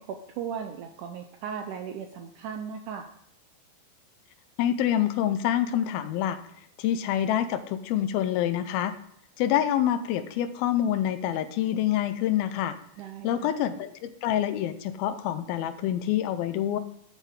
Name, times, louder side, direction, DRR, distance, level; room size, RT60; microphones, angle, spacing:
voice 1, 0.0-3.1 13.0-13.6, right 7 dB, 80° right, 5 dB, 1.8 m, -37 dB
voice 2, 4.6-6.4 6.8-8.9 9.4-12.8 13.2-16.8, left 11 dB, 85° left, 11 dB, 2.6 m, -26 dB
12.5 x 7.4 x 3.7 m, 0.68 s
omnidirectional pair, 4.3 m